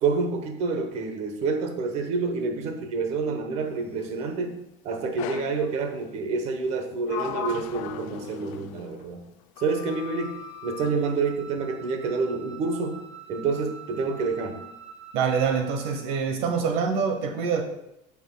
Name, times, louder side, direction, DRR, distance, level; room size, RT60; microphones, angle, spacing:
voice 1, 0.0-4.5 4.8-9.2 9.6-10.3 10.6-13.0 13.3-14.5, right 4 dB, 40° right, 5 dB, 1.0 m, -28 dB
Sliding door, 5.2-5.6 6.6-9.1 9.6-11.0, left 9 dB, 80° left, 0.5 m, -37 dB
Wind instrument woodwind instrument, 9.9-16.1, right 7 dB, 5° right, 1.5 m, -45 dB
voice 2, 15.1-17.6, right 6 dB, 60° right, 4 dB, 0.9 m, -25 dB
14.0 x 5.9 x 2.3 m, 0.84 s
cardioid pair, 165°, 17 cm